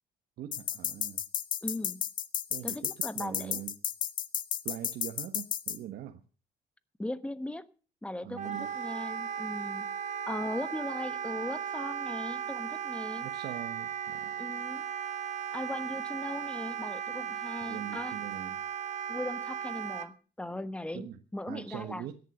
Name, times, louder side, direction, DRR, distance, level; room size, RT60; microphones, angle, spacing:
voice 1, 0.4-1.2 2.5-3.7 4.6-6.2 8.2-8.7 13.2-14.3 17.6-18.6 20.9-22.2, right 11 dB, 70° right, 1.4 m, -42 dB
sound 1, 0.5-5.8, left 9 dB, 55° left, 1.4 m, -32 dB
voice 2, 1.6-2.0 2.6-3.6 7.0-7.7 8.0-9.9 10.3-13.3 14.4-14.9 15.5-18.2 19.1-22.1, left 1 dB, 5° left, 1.2 m, -38 dB
Wind instrument woodwind instrument, 8.4-20.1, right 8 dB, 45° right, 1.6 m, -36 dB
16.5 x 11.0 x 6.8 m
cardioid pair, 110°, 17 cm